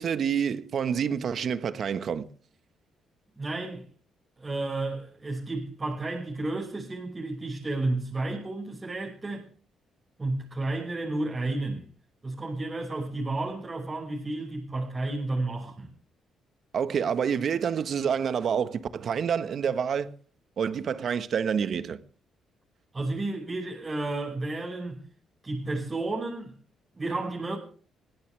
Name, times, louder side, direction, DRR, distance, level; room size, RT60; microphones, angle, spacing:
voice 1, 0.0-2.3 16.7-20.2 20.6-22.0, right 7 dB, 55° right, 1.4 m, -28 dB
voice 2, 3.4-3.9 4.4-9.5 10.2-11.9 12.2-15.9 22.9-25.0 25.4-26.6 26.9-27.6, right 2 dB, 25° right, 5.7 m, -32 dB
21.0 x 16.5 x 3.4 m
cardioid pair, 90°, 0 cm